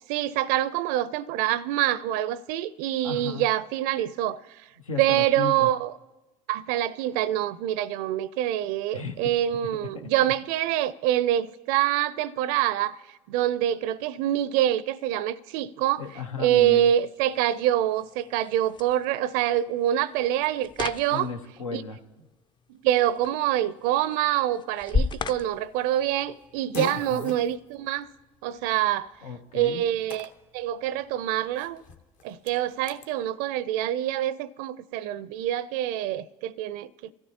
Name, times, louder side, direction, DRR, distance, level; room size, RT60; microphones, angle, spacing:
voice 1, 0.1-4.6 5.0-5.9 6.5-13.0 13.3-16.0 16.4-21.3 21.7-21.8 22.7-28.1 28.4-29.1 29.5-31.8 32.2-37.1, right 12 dB, 65° right, 0.4 m, -26 dB
voice 2, 3.0-3.4 4.8-5.7 8.9-9.3 9.8-10.3 16.0-16.9 21.1-22.0 26.9-27.3 29.2-29.8, left 6 dB, 90° left, 1.0 m, -35 dB
sound 1, 15.8-26.8, left 4 dB, 30° left, 0.5 m, -37 dB
Fart, 25.4-33.1, left 6 dB, 50° left, 1.1 m, -44 dB
24.0 x 13.0 x 2.8 m
hypercardioid pair, 70°, 17 cm